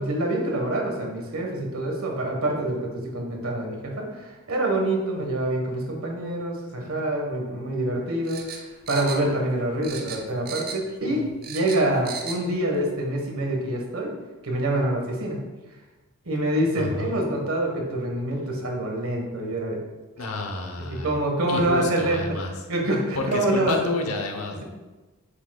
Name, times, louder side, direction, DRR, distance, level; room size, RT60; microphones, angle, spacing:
voice 1, 0.0-8.6 8.9-14.1 14.4-15.4 16.2-19.8 20.8-22.2 22.7-24.0, right 1 dB, 80° right, 1 dB, 1.4 m, -26 dB
sound 1, 8.2-9.6 9.8-11.0 11.2-12.4 12.7-12.8, right 5 dB, 40° right, 0.7 m, -36 dB
voice 2, 16.8-17.2 20.2-21.1 21.5-22.5 23.1-24.6, left 2 dB, 90° left, 3 dB, 1.0 m, -30 dB
7.6 x 6.7 x 2.3 m, 1.2 s
head